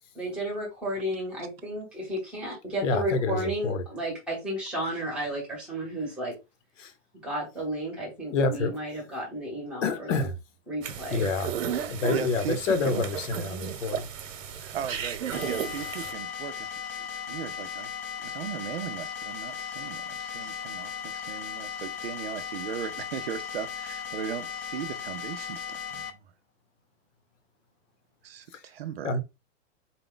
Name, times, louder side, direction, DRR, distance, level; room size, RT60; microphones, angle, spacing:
voice 1, 0.1-6.3 7.2-10.3 10.7-11.3, right 1 dB, 5° right, 0.9 m, -33 dB
voice 2, 2.8-3.8 6.8-6.9 8.3-8.7 9.8-10.3 11.1-11.5 11.9-14.0 29.0-29.2, left 4 dB, 70° left, 1.0 m, -27 dB
sound 1, 10.8-16.1, right 8 dB, 85° right, 1.0 m, -34 dB
voice 3, 11.7-13.2 14.6-17.9 18.2-26.2 28.2-29.2, right 9 dB, 55° right, 0.5 m, -38 dB
sound 2, 15.3-26.1, left 7 dB, 50° left, 0.5 m, -37 dB
4.1 x 2.3 x 3.8 m
supercardioid pair, 175°, 38 cm